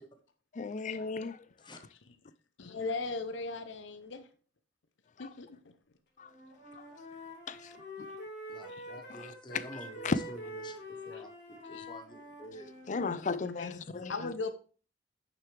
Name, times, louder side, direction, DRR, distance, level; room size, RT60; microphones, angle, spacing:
voice 1, 0.5-1.8 5.2-5.3 6.2-6.3 6.7-6.9 7.5-7.7 8.0-8.1 9.1-10.2 12.9-14.3, left 4 dB, 40° left, 0.4 m, -36 dB
voice 2, 2.6-4.3 5.2-5.8 8.7-8.9 11.1-11.2 11.7-11.9 13.0-13.2 13.6-14.5, left 3 dB, 80° left, 0.8 m, -39 dB
Wind instrument woodwind instrument, 6.2-12.9, left 1 dB, 60° left, 2.5 m, -46 dB
voice 3, 8.5-10.8 11.1-12.7, right 1 dB, 25° left, 1.1 m, -48 dB
9.2 x 6.8 x 3.4 m
head